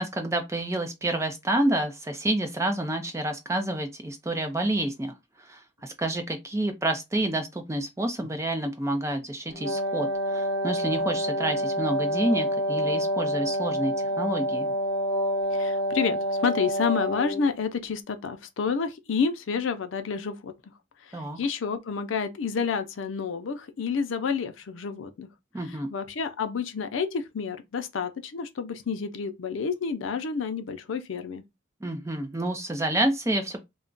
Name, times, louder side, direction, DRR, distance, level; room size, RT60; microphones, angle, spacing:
voice 1, 0.0-14.7 21.1-21.4 25.5-25.9 31.8-33.6, right 1 dB, 15° right, 0.4 m, -29 dB
Wind instrument woodwind instrument, 9.5-17.5, equal, 55° right, 0.8 m, -27 dB
voice 2, 15.5-20.5 21.1-25.3 25.7-31.4, left 5 dB, 85° left, 0.5 m, -29 dB
2.3 x 2.1 x 3.7 m
head